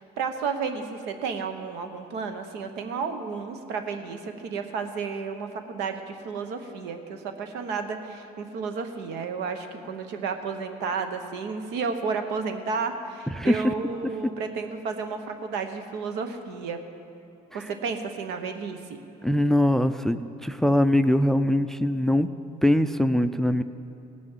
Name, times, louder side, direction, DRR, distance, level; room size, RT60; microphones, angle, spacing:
voice 1, 0.0-16.8 17.5-19.0, right 5 dB, 90° right, 7 dB, 1.0 m, -32 dB
voice 2, 13.4-13.7 17.5-17.7 19.2-22.3 22.6-23.6, left 1 dB, ahead, 12 dB, 0.3 m, -22 dB
17.5 x 6.4 x 7.3 m, 2.7 s
cardioid pair, 110°, 17 cm